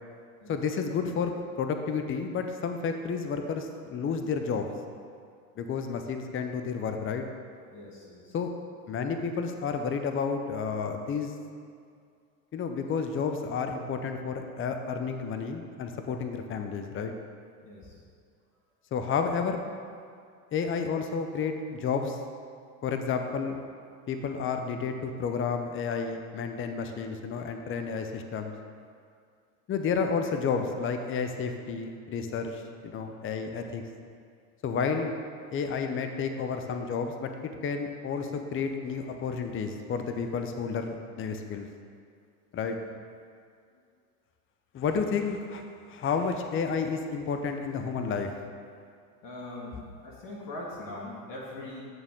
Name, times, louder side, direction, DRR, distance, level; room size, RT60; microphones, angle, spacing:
voice 1, 0.5-4.7 5.6-7.2 8.3-8.5 8.9-11.3 12.5-17.1 18.9-19.6 20.5-22.2 22.8-23.6 24.1-28.5 29.7-33.8 34.6-35.1 35.5-37.3 37.6-41.7 42.5-42.8 44.7-48.3, left 5 dB, 30° left, 6 dB, 0.7 m, -31 dB
voice 2, 7.7-8.4 17.6-18.0 42.6-42.9 49.2-51.8, left 1 dB, 50° left, -4 dB, 2.0 m, -42 dB
8.8 x 6.6 x 3.7 m, 2.3 s
hypercardioid pair, 85°, 44 cm